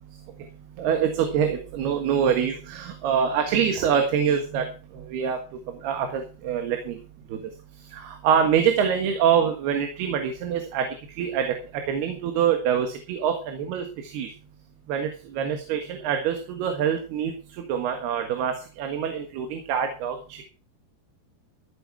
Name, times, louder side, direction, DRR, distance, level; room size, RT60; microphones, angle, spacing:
voice 1, 0.8-4.7 4.9-5.4 5.8-7.0 7.3-7.4 7.9-10.9 11.2-11.6 11.9-14.3 14.9-17.4 17.7-20.4, right 8 dB, 80° right, 5 dB, 3.6 m, -25 dB
15.0 x 9.3 x 4.7 m, 0.35 s
omnidirectional pair, 4.6 m